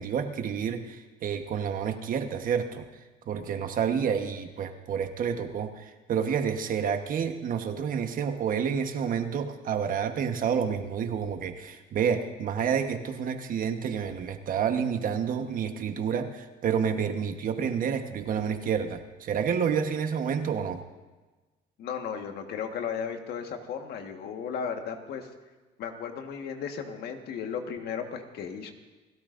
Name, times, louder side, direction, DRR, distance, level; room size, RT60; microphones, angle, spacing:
voice 1, 0.0-2.9 3.3-20.8, right 7 dB, 55° right, 7 dB, 1.2 m, -29 dB
voice 2, 21.8-25.3 25.8-28.7, left 7 dB, 70° left, 5 dB, 1.6 m, -35 dB
29.0 x 13.0 x 2.6 m, 1.2 s
cardioid pair, 110°, 17 cm